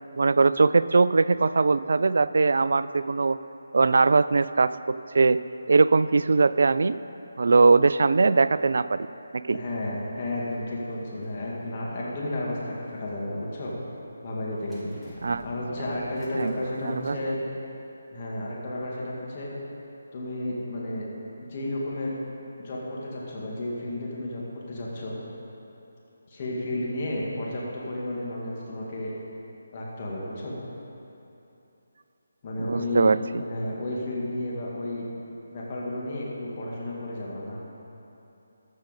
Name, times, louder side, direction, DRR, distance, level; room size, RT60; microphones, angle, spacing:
voice 1, 0.2-3.4 3.7-5.4 5.7-7.0 7.4-9.1 9.3-9.6 15.2-15.4 16.4-16.5 16.8-17.2 32.7-33.4, right 4 dB, 65° right, 15 dB, 0.3 m, -21 dB
voice 2, 9.5-13.8 14.2-17.4 18.1-19.5 20.1-21.1 21.4-22.2 22.6-25.2 26.3-29.1 29.7-30.6 32.4-35.1 35.5-37.6, left 1 dB, 35° left, -5 dB, 2.1 m, -32 dB
sound 1, 10.5-13.0 14.6-17.3 17.7-17.8, right 1 dB, ahead, 1.5 m, -51 dB
14.5 x 6.5 x 5.2 m, 2.9 s
figure-of-eight pair, 155°, 0 cm